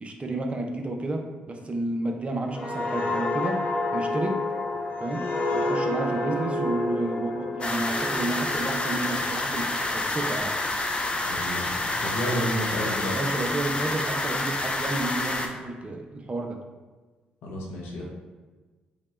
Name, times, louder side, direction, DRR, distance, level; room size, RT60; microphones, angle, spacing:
voice 1, 0.0-3.6 3.9-4.4 5.0-5.3 5.5-10.5 12.3-12.5 13.1-16.6, right 2 dB, 30° right, 3 dB, 0.6 m, -31 dB
sound 1, 2.5-9.9 10.3-10.6, left 2 dB, 40° left, 1.1 m, -29 dB
sound 2, 7.6-15.5, left 2 dB, 25° left, 0.6 m, -28 dB
voice 2, 11.2-13.2 17.4-18.0, equal, 70° left, -3 dB, 0.9 m, -31 dB
4.9 x 2.3 x 3.2 m, 1.3 s
hypercardioid pair, 45°, 4 cm